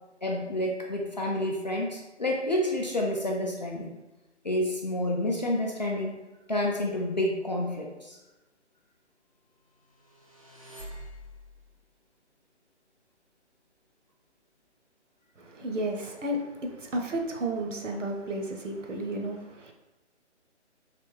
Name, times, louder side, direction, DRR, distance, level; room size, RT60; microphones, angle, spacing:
voice 1, 0.2-3.9 4.4-6.2 6.5-8.2, left 1 dB, 40° left, -1 dB, 0.4 m, -29 dB
sound 1, 9.9-11.7, equal, 30° right, 0.4 m, -45 dB
voice 2, 15.4-19.7, right 1 dB, 85° right, 3 dB, 0.8 m, -32 dB
3.3 x 3.0 x 3.1 m, 1.0 s
figure-of-eight pair, 150°, 36 cm